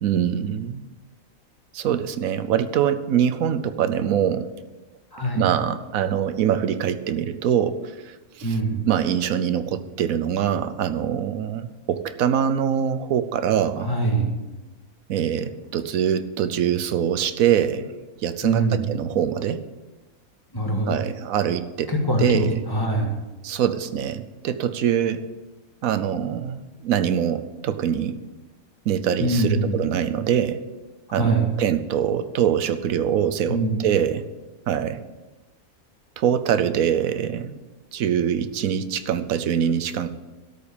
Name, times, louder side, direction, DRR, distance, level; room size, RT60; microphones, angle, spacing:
voice 1, 0.0-0.8 1.7-4.5 5.4-8.6 8.9-13.9 15.1-17.9 18.2-19.6 20.9-21.9 22.2-22.6 23.4-25.2 25.8-28.2 28.9-30.6 31.1-34.2 34.7-35.0 36.2-37.6 37.9-40.1, right 9 dB, 75° right, 11 dB, 1.1 m, -24 dB
voice 2, 5.1-5.5 8.4-8.8 13.8-14.3 18.4-18.9 20.5-21.0 21.9-23.2 29.2-29.8 31.1-31.5 33.5-33.9, right 2 dB, 15° left, 0 dB, 1.9 m, -23 dB
13.0 x 5.3 x 8.6 m, 1.2 s
omnidirectional pair, 1.5 m